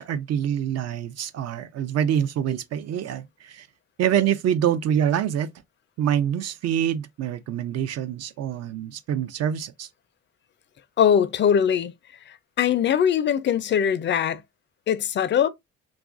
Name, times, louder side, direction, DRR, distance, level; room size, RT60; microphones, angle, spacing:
voice 1, 0.0-3.7 4.0-5.5 6.0-9.9, right 9 dB, 55° right, 0.5 m, -25 dB
voice 2, 11.0-11.9 12.3-14.4 14.9-15.5, left 8 dB, 40° left, 0.4 m, -21 dB
3.0 x 2.4 x 2.4 m
cardioid pair, 90°, 30 cm